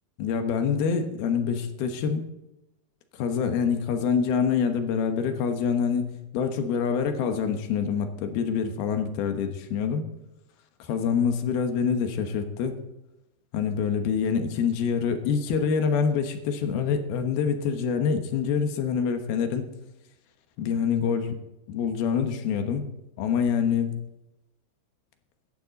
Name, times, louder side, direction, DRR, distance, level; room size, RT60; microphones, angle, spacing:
voice 1, 0.2-2.2 3.2-10.0 10.9-12.8 13.5-19.7 20.6-21.4 21.7-22.8 23.2-24.0, left 6 dB, 80° left, 6 dB, 3.1 m, -26 dB
16.5 x 11.5 x 4.1 m, 0.93 s
omnidirectional pair, 4.4 m